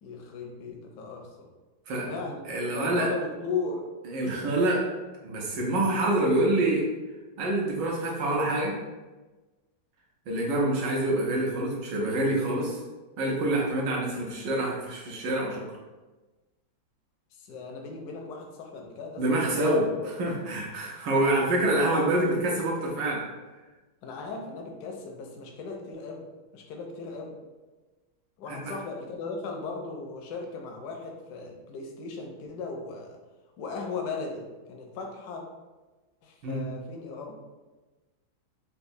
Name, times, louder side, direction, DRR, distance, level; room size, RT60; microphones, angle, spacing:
voice 1, 0.0-1.5 2.0-3.8 17.3-19.8 21.1-22.2 24.0-26.2 26.5-27.3 28.4-33.2 33.6-35.4 36.2-37.4, left 4 dB, 75° left, 2 dB, 0.9 m, -37 dB
voice 2, 2.5-3.1 4.1-4.9 5.2-6.9 7.4-8.8 10.3-12.8 13.2-15.6 19.2-23.3 28.5-28.7 36.4-36.6, right 1 dB, 70° right, -2 dB, 1.3 m, -26 dB
4.1 x 2.2 x 2.6 m, 1.2 s
omnidirectional pair, 2.2 m